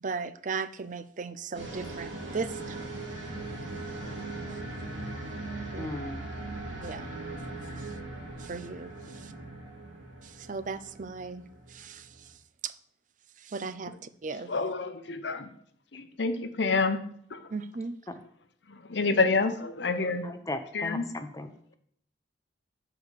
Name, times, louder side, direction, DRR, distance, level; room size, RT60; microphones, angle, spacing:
voice 1, 0.0-3.0 5.7-5.9 6.8-7.1 7.8-7.9 8.4-9.3 10.2-12.1 12.6-12.7 13.4-13.9 14.2-14.5 17.5-18.0, right 4 dB, 45° right, 0.5 m, -37 dB
sound 1, 1.5-12.3, right 2 dB, 75° right, 2.5 m, -39 dB
voice 2, 5.6-6.2 18.1-18.2 20.2-21.8, left 1 dB, 15° left, 0.7 m, -38 dB
voice 3, 14.5-15.5 15.9-17.0 17.3-17.4 18.7-20.3 20.7-21.1, left 3 dB, 65° left, 0.8 m, -28 dB
7.2 x 4.8 x 6.6 m
head